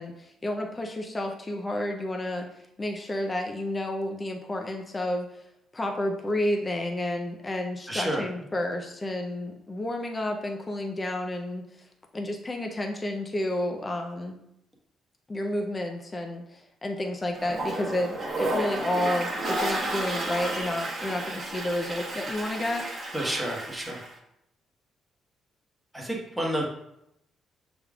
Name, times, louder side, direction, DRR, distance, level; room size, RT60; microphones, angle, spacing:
voice 1, 0.0-5.4 5.7-11.9 12.1-14.4 15.3-22.9, left 1 dB, 25° left, 3 dB, 0.6 m, -31 dB
voice 2, 7.9-8.2 23.1-24.0 25.9-26.7, right 1 dB, 5° right, -2 dB, 1.2 m, -30 dB
Toilet flush, 17.3-24.1, right 1 dB, 40° right, 1.3 m, -32 dB
6.3 x 3.5 x 2.4 m, 0.80 s
cardioid pair, 90°, 0 cm